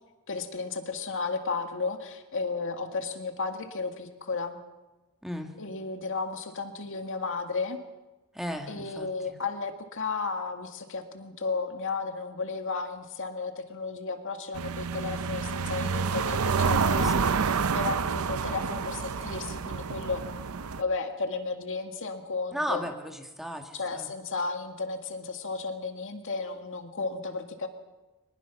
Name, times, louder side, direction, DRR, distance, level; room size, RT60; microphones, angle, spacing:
voice 1, 0.3-4.6 5.6-7.8 8.7-20.3 20.8-22.9 23.7-27.7, left 4 dB, 60° left, 5 dB, 2.0 m, -33 dB
voice 2, 5.2-5.5 8.3-9.4 16.9-17.3 22.5-24.1, equal, ahead, 3 dB, 1.9 m, -35 dB
sound 1, 14.5-20.8, right 5 dB, 70° right, 0.6 m, -28 dB
23.5 x 20.5 x 5.9 m, 1.1 s
head